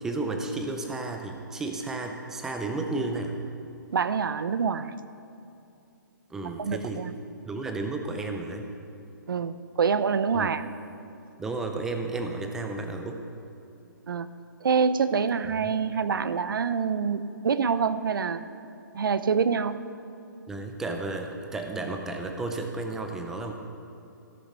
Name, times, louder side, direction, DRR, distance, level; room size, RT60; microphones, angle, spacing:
voice 1, 0.0-3.4 6.3-7.1 7.4-8.7 10.3-10.5 11.4-13.2 15.6-15.7 20.5-23.5, right 2 dB, 5° right, 4 dB, 0.5 m, -32 dB
voice 2, 3.9-4.9 6.6-7.2 9.3-10.6 14.1-14.3 14.6-18.4 18.9-19.8, right 6 dB, 85° right, 14 dB, 0.6 m, -26 dB
13.5 x 7.8 x 5.5 m, 2.8 s
hypercardioid pair, 170°, 11 cm